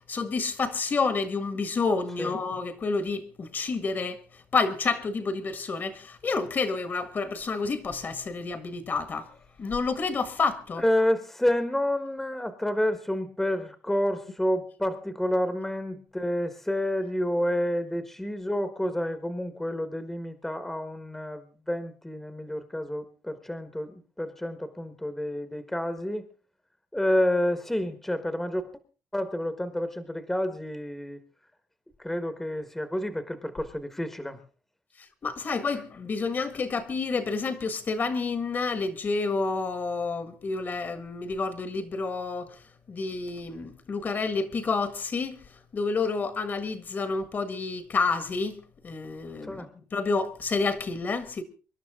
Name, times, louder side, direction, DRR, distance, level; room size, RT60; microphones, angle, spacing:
voice 1, 0.1-4.2 4.5-9.2 9.6-10.8 35.2-42.5 42.9-45.4 45.7-49.6 49.9-51.4, left 4 dB, 35° left, 1.6 m, -29 dB
voice 2, 10.8-26.2 26.9-28.7 29.1-31.2 32.0-34.4 49.4-49.7, left 1 dB, 5° left, 1.3 m, -29 dB
25.0 x 11.5 x 3.6 m
cardioid pair, 155°, 6 cm